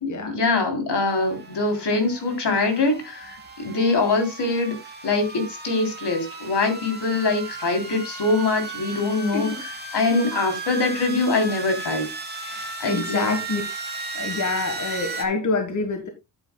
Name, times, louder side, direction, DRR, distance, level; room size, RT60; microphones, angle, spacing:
voice 1, 0.0-4.7 5.0-9.5 9.9-12.1 12.8-13.2, left 3 dB, 75° left, 3.4 m, -23 dB
sound 1, 1.1-15.2, right 3 dB, 25° right, 2.3 m, -35 dB
voice 2, 9.3-9.6 10.0-10.2 12.4-13.6 14.1-16.1, left 3 dB, 45° left, 1.5 m, -27 dB
11.0 x 9.1 x 2.2 m
wide cardioid pair, 145°, 41 cm